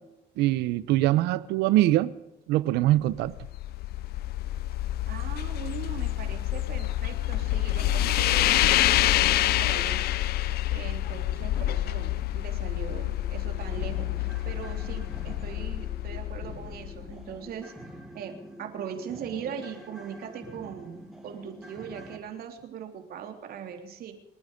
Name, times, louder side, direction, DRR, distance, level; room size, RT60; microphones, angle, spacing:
voice 1, 0.4-2.1 2.5-3.3, right 15 dB, 90° right, 0.8 m, -23 dB
sound 1, 3.1-17.3, left 14 dB, 70° left, 0.6 m, -27 dB
voice 2, 5.1-10.0 10.7-17.7 18.1-20.9 21.2-24.1, right 8 dB, 65° right, 3.4 m, -40 dB
sound 2, 12.2-12.3 12.7-12.8 13.1-22.2, equal, ahead, 4.6 m, -46 dB
27.5 x 9.7 x 5.2 m
cardioid pair, 110°, 17 cm